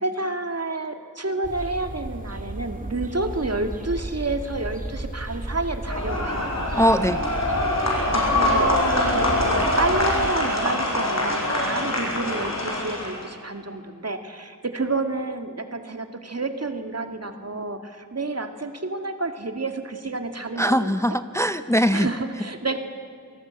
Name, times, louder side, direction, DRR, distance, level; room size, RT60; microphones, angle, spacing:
voice 1, 0.0-6.5 7.8-8.8 9.1-21.2 21.9-22.8, right 2 dB, 50° right, 7 dB, 2.1 m, -29 dB
sound 1, 1.4-10.3, right 1 dB, 25° right, 2.6 m, -34 dB
sound 2, 5.9-13.3, left 1 dB, 50° left, 6.7 m, -24 dB
voice 2, 6.8-7.2 20.6-22.1, equal, 10° left, 12 dB, 0.6 m, -21 dB
27.5 x 18.5 x 8.9 m, 2.3 s
wide cardioid pair, 65°, 33 cm